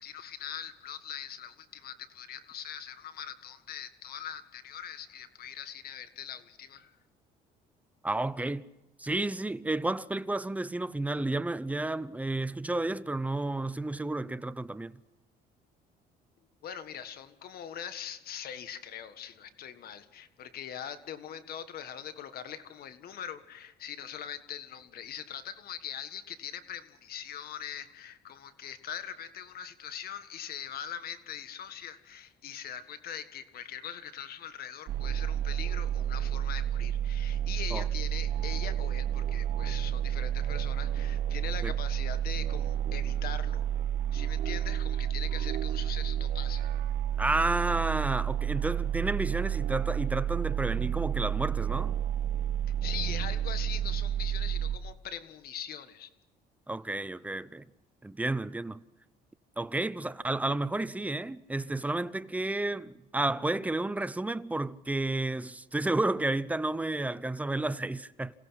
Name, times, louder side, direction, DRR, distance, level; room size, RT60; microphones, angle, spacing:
voice 1, 0.0-6.9 16.6-43.6 44.1-46.7 52.8-56.1, left 9 dB, 65° left, 1.6 m, -42 dB
voice 2, 8.0-8.7 9.0-14.9 37.7-37.9 41.6-41.7 47.2-51.9 56.7-57.6 58.0-58.8 59.6-68.3, right 2 dB, 10° right, 0.6 m, -31 dB
sound 1, 34.9-54.8, right 10 dB, 65° right, 1.5 m, -30 dB
27.5 x 17.0 x 5.8 m
cardioid pair, 110°, 17 cm